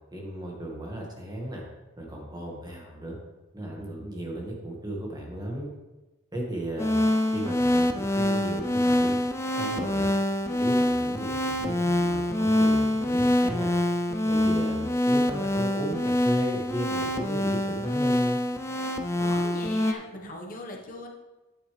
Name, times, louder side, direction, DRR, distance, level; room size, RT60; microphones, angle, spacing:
voice 1, 0.1-1.6 2.0-3.2 3.5-5.7 6.3-6.9 7.3-9.2 9.6-10.1 10.5-13.7 14.2-18.4, right 1 dB, 20° right, -1 dB, 1.8 m, -35 dB
sound 1, 6.8-19.9, left 1 dB, 15° left, 0.5 m, -25 dB
voice 2, 19.2-21.1, left 1 dB, 40° left, 0 dB, 1.4 m, -40 dB
9.2 x 9.1 x 3.4 m, 1.1 s
head